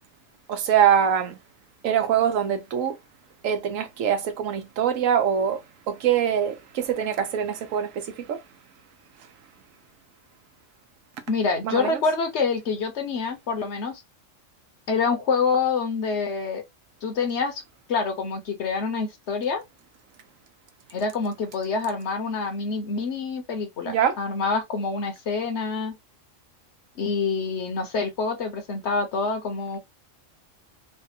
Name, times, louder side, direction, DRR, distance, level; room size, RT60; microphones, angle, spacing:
voice 1, 0.5-1.4 1.8-3.0 3.4-8.4 11.6-12.0 23.9-24.2, right 8 dB, 80° right, 1.1 m, -24 dB
voice 2, 11.3-14.0 14.9-16.6 17.0-17.6 17.9-19.6 20.9-26.0 27.0-29.8, left 4 dB, 65° left, 1.1 m, -26 dB
3.3 x 2.2 x 2.7 m
omnidirectional pair, 1.3 m